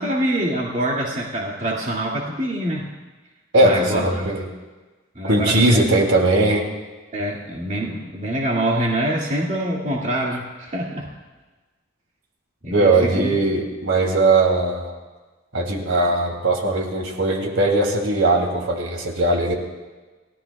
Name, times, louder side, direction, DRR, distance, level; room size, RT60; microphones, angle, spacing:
voice 1, 0.0-2.9 3.6-4.3 5.1-5.8 7.1-11.1 12.6-13.4, right 1 dB, 40° right, -3 dB, 2.3 m, -25 dB
voice 2, 3.5-4.4 5.3-6.7 12.7-14.9 15.5-19.5, right 2 dB, 75° right, 1 dB, 2.9 m, -19 dB
29.5 x 17.0 x 2.4 m, 1.3 s
head